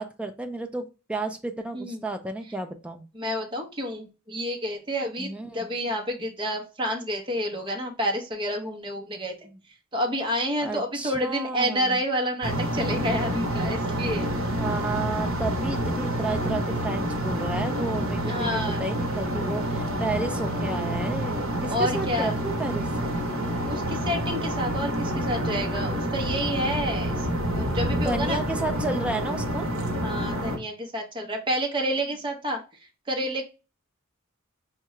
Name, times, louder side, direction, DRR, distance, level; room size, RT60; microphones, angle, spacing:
voice 1, 0.0-3.1 5.2-5.7 9.4-9.6 10.6-12.0 14.4-22.9 28.0-29.7, right 2 dB, 5° right, 4 dB, 0.4 m, -32 dB
voice 2, 1.7-2.0 3.1-9.4 9.9-14.3 18.2-18.8 21.7-22.4 23.7-27.3 27.5-28.4 30.0-32.6 33.1-33.4, equal, 25° right, 2 dB, 0.8 m, -29 dB
sound 1, 12.4-30.6, right 1 dB, 75° right, 0.8 m, -28 dB
4.6 x 2.2 x 3.0 m, 0.31 s
head